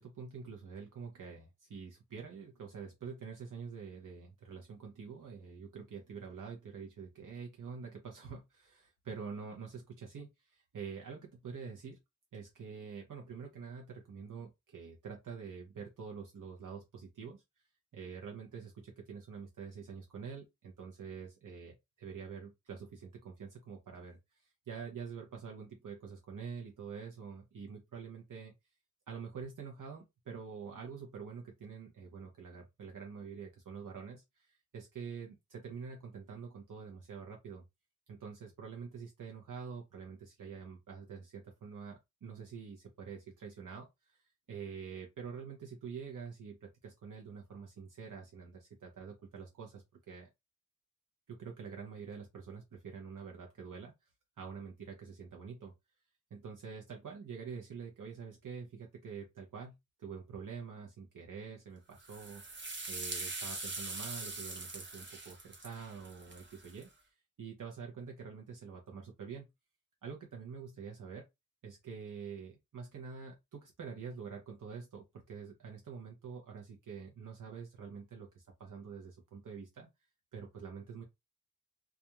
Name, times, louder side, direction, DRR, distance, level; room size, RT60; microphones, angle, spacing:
voice 1, 0.0-12.0 12.3-17.4 17.9-24.2 24.7-28.5 29.1-37.6 38.1-44.2 44.5-50.3 51.3-53.9 54.4-55.7 56.3-62.4 62.9-66.9 67.4-69.5 70.0-71.3 71.6-79.9 80.3-81.0, right 6 dB, 75° right, 0.7 m, -46 dB
sound 1, 62.0-66.8, right 3 dB, 35° right, 0.6 m, -43 dB
2.4 x 2.2 x 2.8 m
wide cardioid pair, 75°, 32 cm